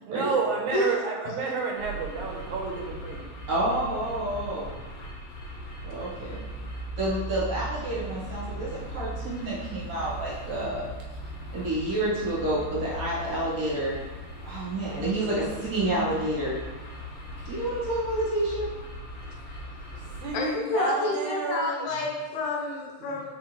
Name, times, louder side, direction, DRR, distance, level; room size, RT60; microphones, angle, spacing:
voice 1, 0.0-3.2 8.4-8.7 11.6-11.7 19.9-21.8 23.0-23.2, right 4 dB, 80° right, 1 dB, 2.0 m, -30 dB
sound 1, 1.7-20.3, equal, 60° left, 1.6 m, -39 dB
voice 2, 3.5-4.7 5.8-6.4 7.0-10.9 11.5-13.9 14.4-16.6 17.5-18.7, right 1 dB, 60° right, -8 dB, 2.0 m, -29 dB
voice 3, 20.3-23.3, left 2 dB, 75° left, -1 dB, 1.9 m, -29 dB
4.6 x 3.6 x 2.9 m, 1.2 s
omnidirectional pair, 3.4 m